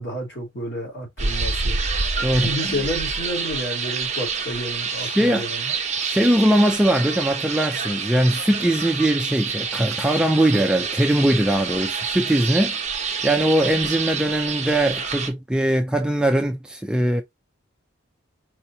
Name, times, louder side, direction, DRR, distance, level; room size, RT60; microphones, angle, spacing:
voice 1, 0.0-1.8 2.3-5.8, equal, 55° left, 2.8 m, -30 dB
sound 1, 1.2-15.3, right 5 dB, 35° right, 0.8 m, -27 dB
voice 2, 2.2-2.8 5.0-5.5 6.0-17.2, right 1 dB, 5° right, 0.3 m, -21 dB
4.8 x 2.9 x 2.6 m
head